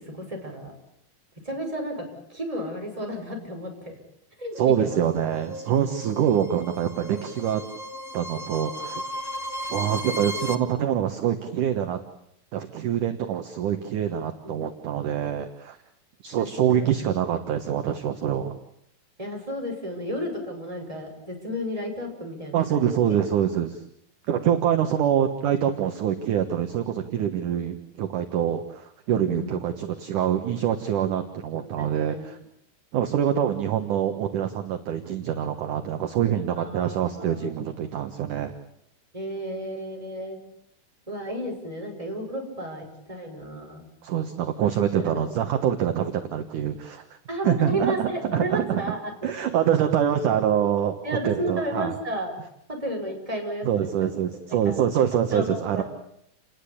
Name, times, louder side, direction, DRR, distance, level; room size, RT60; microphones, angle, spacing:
voice 1, 0.1-0.7 1.4-2.0 2.3-4.0 4.4-5.0 14.4-14.5 16.4-16.5 16.7-17.1 19.2-22.8 29.1-29.6 31.6-32.2 36.6-37.6 39.1-40.4 41.1-43.8 44.9-45.3 47.3-49.1 51.0-52.4 52.7-54.1 54.5-54.8 55.3-55.8, equal, 10° right, 1 dB, 6.1 m, -33 dB
sound 1, 4.5-10.5, equal, 30° left, 1.5 m, -36 dB
voice 2, 4.6-7.6 8.1-9.0 9.7-12.0 12.5-15.8 16.2-18.5 22.5-23.8 24.3-32.4 32.9-38.5 44.0-47.0 47.4-48.8 49.2-51.0 51.2-52.0 53.6-55.8, right 9 dB, 60° right, 7 dB, 2.5 m, -25 dB
29.5 x 20.0 x 8.6 m, 0.73 s
omnidirectional pair, 4.7 m